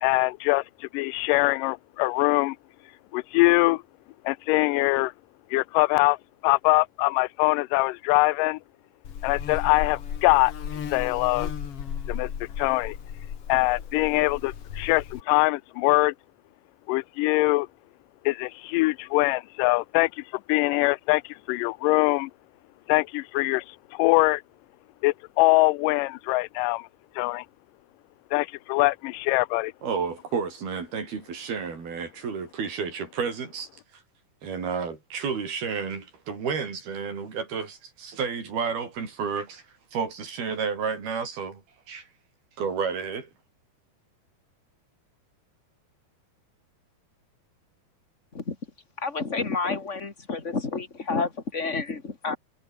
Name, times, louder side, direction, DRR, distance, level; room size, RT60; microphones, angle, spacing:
voice 1, 0.0-2.6 3.1-3.8 4.3-5.1 5.5-6.2 6.4-8.6 9.2-10.5 10.9-11.5 12.1-12.3 12.6-13.0 13.5-16.1 16.9-17.7 18.3-20.2 20.5-22.3 22.9-24.4 25.0-26.9 27.2-27.5 28.3-29.7, left 22 dB, 85° left, 1.9 m, -23 dB
Buzz, 9.0-15.2, left 8 dB, 45° left, 2.3 m, -35 dB
voice 2, 29.8-34.0 34.4-39.6 39.9-41.6 41.9-42.1 42.6-43.3, right 6 dB, 80° right, 7.3 m, -31 dB
voice 3, 49.0-52.4, left 4 dB, 20° left, 2.6 m, -29 dB
omnidirectional pair, 4.3 m